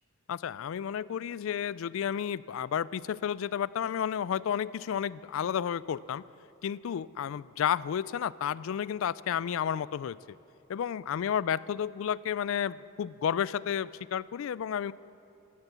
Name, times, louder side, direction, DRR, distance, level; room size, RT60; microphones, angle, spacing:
voice 1, 0.3-6.2 6.6-10.2 10.7-14.9, left 8 dB, 60° left, 19 dB, 0.3 m, -31 dB
15.5 x 12.0 x 6.9 m, 2.8 s
head